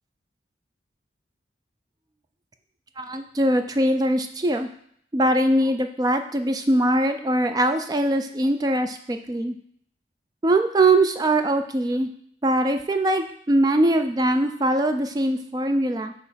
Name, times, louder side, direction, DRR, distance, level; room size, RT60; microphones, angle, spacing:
voice 1, 3.0-4.7 5.1-9.5 10.4-12.1 12.4-16.1, right 1 dB, 20° right, 7 dB, 0.3 m, -22 dB
6.3 x 3.0 x 5.6 m, 0.66 s
head